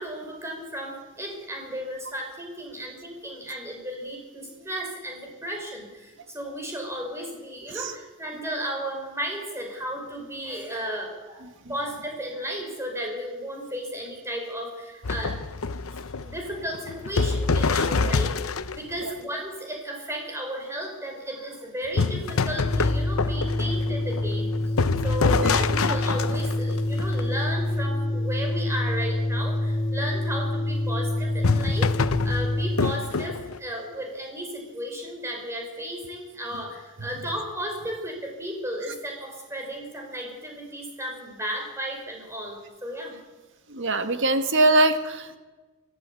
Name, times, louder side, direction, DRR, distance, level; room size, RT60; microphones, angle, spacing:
voice 1, 0.0-15.4 16.2-18.3 18.6-24.5 25.0-43.2, equal, 15° right, 1 dB, 5.6 m, -34 dB
sound 1, 15.0-19.0 22.0-27.7 31.4-33.6, left 4 dB, 70° left, 0.8 m, -26 dB
Organ, 22.6-32.9, left 1 dB, 25° left, 0.9 m, -27 dB
voice 2, 43.7-45.4, right 2 dB, 60° right, 8 dB, 1.9 m, -23 dB
23.0 x 15.0 x 8.5 m, 1.2 s
head